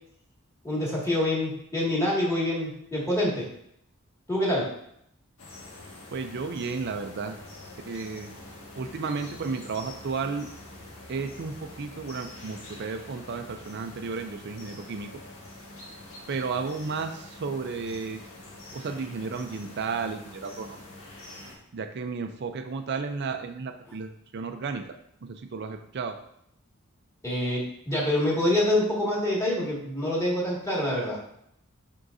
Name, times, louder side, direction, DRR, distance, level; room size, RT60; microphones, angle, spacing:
voice 1, 0.6-3.5 4.3-4.7 27.2-31.2, left 1 dB, 15° left, -5 dB, 2.0 m, -26 dB
sound 1, 5.4-21.5, left 2 dB, 70° left, 1.7 m, -45 dB
voice 2, 6.1-7.4 7.9-8.3 8.8-10.5 11.1-15.1 16.3-18.2 18.7-20.8 21.7-24.8 25.3-26.2, right 4 dB, 55° right, 6 dB, 0.5 m, -33 dB
11.0 x 3.8 x 2.6 m, 0.72 s
head